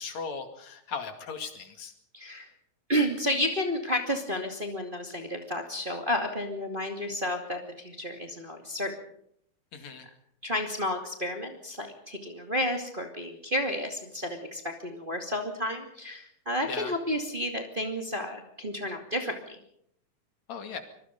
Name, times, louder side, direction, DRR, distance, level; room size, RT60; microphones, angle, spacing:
voice 1, 0.0-1.9 9.7-10.1 16.7-16.9 20.5-20.8, left 5 dB, 65° left, 6 dB, 3.5 m, -37 dB
voice 2, 2.1-2.5 2.9-8.9 10.4-19.6, left 1 dB, 20° right, 3 dB, 2.3 m, -31 dB
25.0 x 21.5 x 5.3 m, 0.71 s
omnidirectional pair, 3.5 m